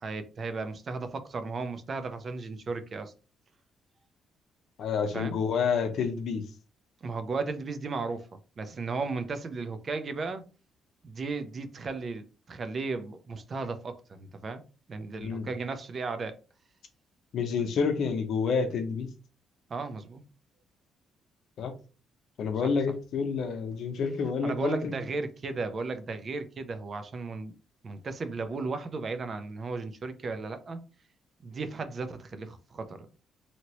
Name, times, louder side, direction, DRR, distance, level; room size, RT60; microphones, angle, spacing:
voice 1, 0.0-3.1 5.1-5.4 7.0-8.3 8.6-10.4 11.0-14.6 14.9-16.3 19.7-20.2 22.6-22.7 24.4-27.5 27.8-30.8 31.4-33.2, right 4 dB, 45° right, 0.5 m, -35 dB
voice 2, 4.8-6.4 15.2-15.5 17.3-19.1 21.6-21.7 22.4-24.9, left 5 dB, 70° left, 0.7 m, -29 dB
2.9 x 2.8 x 2.9 m
cardioid pair, 90°, 0 cm